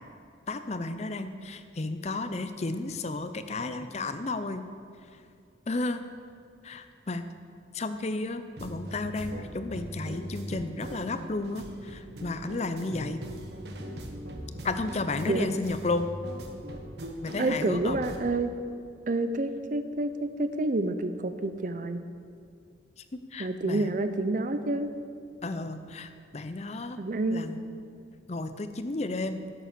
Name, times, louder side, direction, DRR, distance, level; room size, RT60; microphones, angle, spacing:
voice 1, 0.5-4.7 5.7-6.0 6.6-7.3 7.7-13.2 14.6-16.1 17.2-18.0 23.0-23.9 25.4-27.0 27.3-27.6 28.3-29.4, left 2 dB, 35° left, 10 dB, 0.6 m, -33 dB
sound 1, 8.6-18.2, right 1 dB, 65° right, 1.2 m, -40 dB
voice 2, 17.4-18.5 19.1-22.0 23.4-24.9 27.0-27.5, right 2 dB, 45° right, 9 dB, 0.6 m, -28 dB
11.5 x 7.6 x 6.7 m, 2.4 s
head